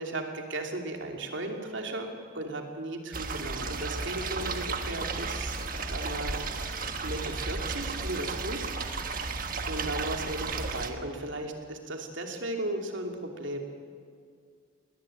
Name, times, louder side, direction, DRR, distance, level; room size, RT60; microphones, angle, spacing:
voice 1, 0.0-2.1 2.3-6.3 7.0-8.7 9.6-13.6, right 1 dB, 75° right, 3 dB, 2.9 m, -36 dB
sound 1, 3.1-10.9, right 4 dB, 45° right, 1.4 m, -34 dB
21.0 x 19.5 x 8.7 m, 2.2 s
head